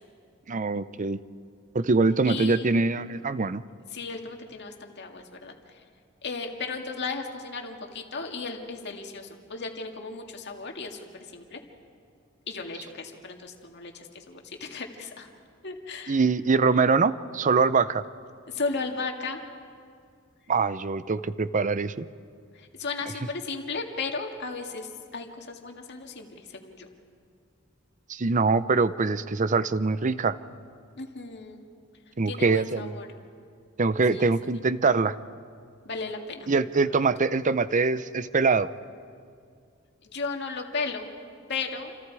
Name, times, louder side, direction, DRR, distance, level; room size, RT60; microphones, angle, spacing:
voice 1, 0.5-1.2 1.7-3.6 16.1-18.0 20.5-22.1 28.1-30.4 32.2-32.9 33.8-35.2 36.5-38.7, right 4 dB, 40° right, 15 dB, 0.6 m, -23 dB
voice 2, 2.2-2.8 3.9-5.8 6.2-11.0 11.3-11.6 12.5-15.3 15.6-16.2 18.5-19.4 22.5-26.9 31.0-31.6 32.3-33.1 34.1-34.3 35.8-36.5 36.9-37.1 40.0-41.1 41.5-41.9, left 4 dB, 55° left, 3 dB, 2.1 m, -35 dB
28.5 x 27.0 x 4.8 m, 2.3 s
head